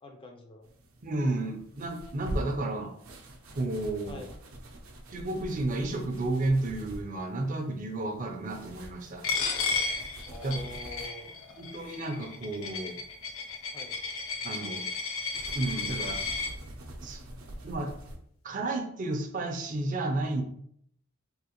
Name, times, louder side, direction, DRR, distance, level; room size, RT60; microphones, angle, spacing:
voice 1, 0.0-0.7 4.1-4.4 10.3-11.4 13.7-14.0, left 2 dB, 25° left, 3 dB, 0.4 m, -45 dB
sound 1, 0.6-18.2, right 1 dB, 85° right, 0.6 m, -45 dB
voice 2, 1.0-2.9 3.6-4.2 5.1-9.4 10.4-10.6 11.6-13.0 14.4-14.8 15.5-16.2 17.0-17.2 17.6-17.9 18.4-20.4, right 2 dB, 40° right, 4 dB, 0.4 m, -32 dB
Coin (dropping), 9.2-16.5, left 4 dB, 75° left, 0.5 m, -33 dB
3.6 x 2.4 x 2.8 m, 0.67 s
head